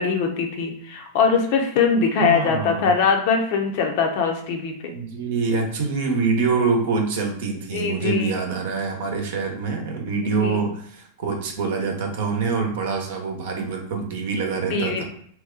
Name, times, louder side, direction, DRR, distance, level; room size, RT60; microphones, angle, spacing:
voice 1, 0.0-4.9 7.7-8.3 10.4-10.7 14.7-15.0, left 5 dB, 55° left, 3 dB, 0.7 m, -22 dB
voice 2, 2.2-3.0 4.9-15.0, right 4 dB, 65° right, 3 dB, 0.8 m, -25 dB
2.8 x 2.2 x 3.7 m, 0.62 s
hypercardioid pair, 100°, 0 cm